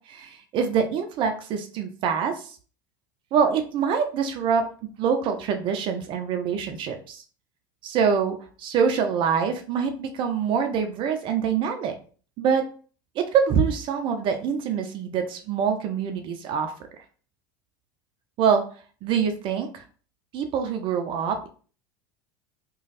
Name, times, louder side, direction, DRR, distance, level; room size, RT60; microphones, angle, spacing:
voice 1, 0.1-2.6 3.3-4.6 5.0-7.2 7.8-12.0 12.4-12.6 13.2-16.7 18.4-18.7 19.0-19.8 20.3-21.5, right 6 dB, 45° right, 6 dB, 0.6 m, -25 dB
3.1 x 2.3 x 4.1 m, 0.40 s
hypercardioid pair, 90°, 11 cm